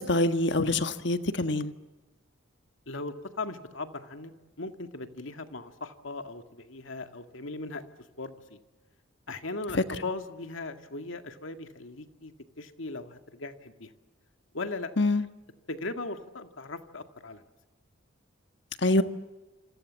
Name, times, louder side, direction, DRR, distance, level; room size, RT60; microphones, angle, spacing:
voice 1, 0.0-1.7 9.7-9.8 15.0-15.3 18.8-19.0, left 2 dB, 60° left, 9 dB, 1.5 m, -25 dB
voice 2, 2.9-4.3 4.6-7.8 8.2-8.6 9.3-12.3 12.6-13.9 14.5-14.9 15.7-17.4, left 3 dB, 75° left, 7 dB, 2.1 m, -38 dB
27.5 x 26.5 x 7.5 m, 1.1 s
head